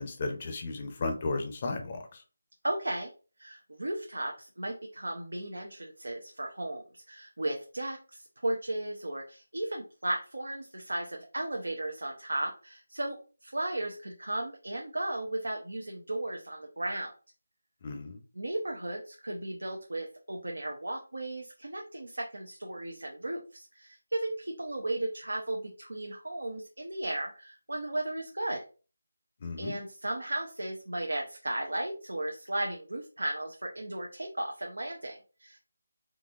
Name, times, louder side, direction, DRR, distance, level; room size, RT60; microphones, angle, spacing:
voice 1, 0.0-2.2 17.8-18.2 29.4-29.8, left 3 dB, 35° left, 5 dB, 0.6 m, -34 dB
voice 2, 2.6-3.1 3.4-17.1 18.3-28.6 29.6-35.6, right 1 dB, 80° right, 1 dB, 0.7 m, -35 dB
3.9 x 2.8 x 2.4 m, 0.36 s
figure-of-eight pair, 165°, 0 cm